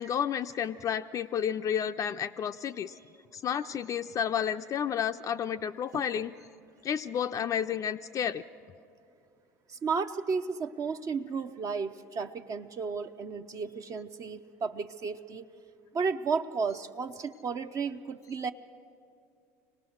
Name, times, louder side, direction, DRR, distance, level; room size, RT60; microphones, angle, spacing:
voice 1, 0.0-2.9 3.3-6.3 6.8-8.4, left 8 dB, 40° left, 7 dB, 0.4 m, -31 dB
voice 2, 9.8-15.5 15.9-18.5, right 5 dB, 40° right, 8 dB, 0.6 m, -33 dB
25.0 x 18.0 x 6.3 m, 2.4 s
supercardioid pair, 90°, 9 cm